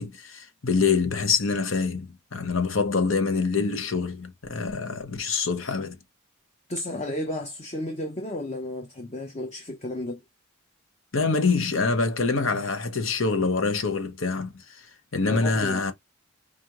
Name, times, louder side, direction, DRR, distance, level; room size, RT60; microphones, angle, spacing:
voice 1, 0.0-6.0 11.1-14.8 15.1-15.9, left 4 dB, 70° left, 1.0 m, -25 dB
voice 2, 6.7-10.2 15.2-15.8, left 1 dB, 30° left, 0.7 m, -33 dB
5.0 x 2.6 x 2.9 m
head